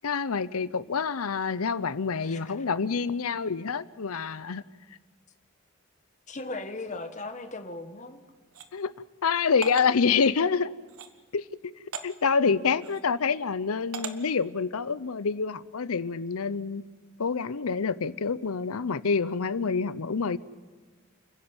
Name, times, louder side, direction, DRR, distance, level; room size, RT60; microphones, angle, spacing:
voice 1, 0.0-4.6 8.7-8.9 9.2-10.7 11.3-11.5 12.0-16.8 17.2-20.4, left 5 dB, 90° left, 17 dB, 0.7 m, -27 dB
voice 2, 2.2-2.5 2.8-2.9 6.3-8.2 12.6-12.7, left 2 dB, 35° left, 7 dB, 1.5 m, -38 dB
sound 1, 8.5-8.7 9.6-9.9 10.9-11.1 11.9-12.1 12.8-13.0 13.9-14.2, right 6 dB, 90° right, 1.5 m, -37 dB
29.5 x 11.0 x 8.8 m, 1.4 s
head